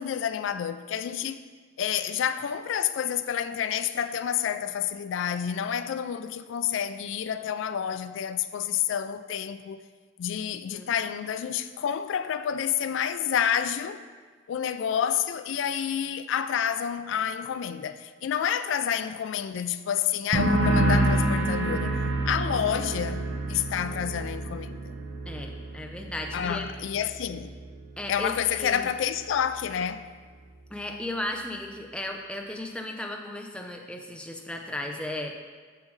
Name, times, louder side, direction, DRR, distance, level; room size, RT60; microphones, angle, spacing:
voice 1, 0.0-1.4 1.8-9.8 10.2-14.0 14.5-21.9 22.2-24.9 26.3-27.5 28.1-30.1, left 9 dB, 80° left, 0.3 m, -29 dB
sound 1, 20.3-27.8 28.1-28.6, right 1 dB, 70° right, 0.9 m, -28 dB
voice 2, 25.3-26.7 28.0-28.8 30.7-35.3, left 1 dB, 5° left, 0.5 m, -35 dB
6.9 x 6.5 x 3.2 m
head